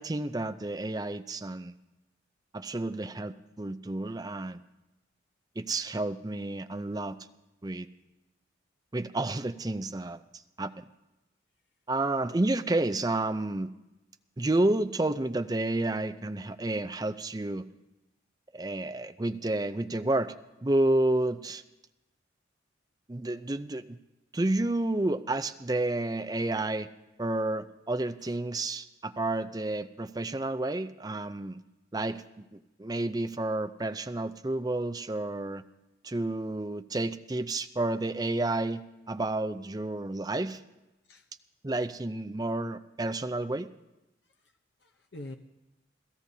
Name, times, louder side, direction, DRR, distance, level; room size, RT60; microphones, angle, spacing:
voice 1, 0.0-1.8 2.5-4.6 5.6-7.2 7.6-7.9 8.9-10.2 10.6-10.9 11.9-13.7 14.4-17.6 18.5-20.3 20.6-21.6 23.1-24.0 24.3-26.9 27.2-31.6 31.9-32.2 32.5-35.6 36.0-40.6 41.6-43.7, right 2 dB, 20° right, 10 dB, 0.5 m, -30 dB
voice 2, 44.2-45.4, left 1 dB, 70° left, 5 dB, 0.8 m, -47 dB
28.0 x 16.0 x 2.8 m, 0.97 s
head